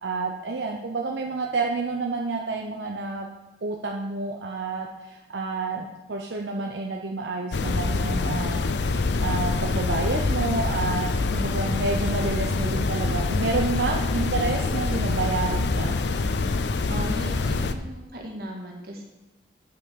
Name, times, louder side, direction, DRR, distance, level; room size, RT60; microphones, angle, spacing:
voice 1, 0.0-3.3 3.6-8.6 9.2-16.0, right 3 dB, 85° right, 1 dB, 0.8 m, -29 dB
sound 1, 7.5-17.7, left 3 dB, 80° left, 0.6 m, -25 dB
voice 2, 16.9-19.0, right 1 dB, 55° right, 0 dB, 2.0 m, -36 dB
8.9 x 5.6 x 6.6 m, 1.0 s
head